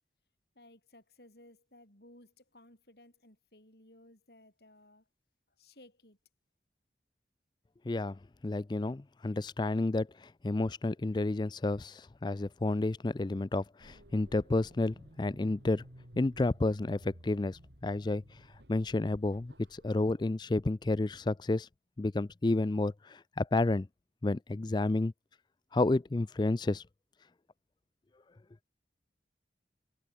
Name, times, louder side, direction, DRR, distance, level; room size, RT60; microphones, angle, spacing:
voice 1, 0.5-5.1 5.6-6.2, left 1 dB, 65° left, 7.6 m, -58 dB
voice 2, 7.9-15.8 16.2-18.2 18.7-21.7 22.0-23.9 24.2-25.1 25.7-26.8, left 2 dB, 25° left, 0.4 m, -31 dB
sound 1, 13.8-20.0, equal, 75° right, 6.9 m, -56 dB
head